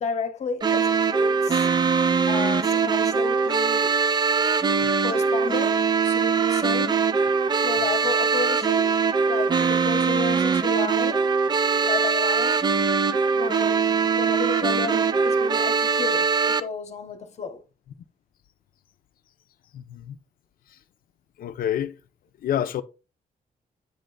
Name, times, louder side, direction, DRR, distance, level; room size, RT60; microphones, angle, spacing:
voice 1, 0.0-1.7 2.3-4.0 5.0-7.0 7.6-8.9 9.2-11.3 11.8-12.7 13.3-17.6, left 5 dB, 50° left, 0.9 m, -32 dB
sound 1, 0.6-16.6, right 5 dB, 30° right, 0.4 m, -22 dB
voice 2, 19.7-20.2 21.4-21.9 22.4-22.8, left 10 dB, 75° left, 0.5 m, -28 dB
8.7 x 3.4 x 3.9 m
wide cardioid pair, 165°, 15 cm